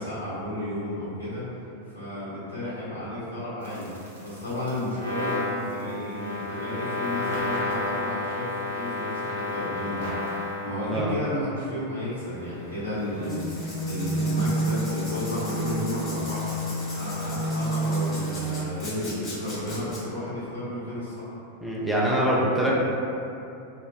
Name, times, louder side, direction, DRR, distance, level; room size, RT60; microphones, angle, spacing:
voice 1, 0.0-3.9 4.2-16.5 16.9-21.3, left 1 dB, 85° right, -13 dB, 1.1 m, -33 dB
sound 1, 3.6-10.9 12.0-18.7, equal, 65° right, 0.6 m, -31 dB
Writing, 13.2-20.0, left 1 dB, 25° left, 1.0 m, -40 dB
voice 2, 21.6-22.7, right 1 dB, 5° right, -6 dB, 0.4 m, -24 dB
2.3 x 2.0 x 3.4 m, 2.7 s
figure-of-eight pair, 90°, 0 cm